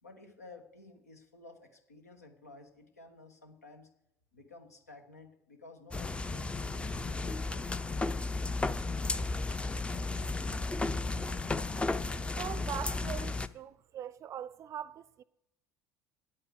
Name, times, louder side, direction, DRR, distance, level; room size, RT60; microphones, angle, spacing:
voice 1, 0.0-3.9 4.3-8.2, left 3 dB, 80° left, 1.2 m, -54 dB
sound 1, 5.9-13.5, left 3 dB, 15° left, 0.5 m, -34 dB
voice 2, 12.4-15.2, right 10 dB, 40° right, 0.4 m, -41 dB
9.2 x 8.8 x 6.3 m
figure-of-eight pair, 60°, 8 cm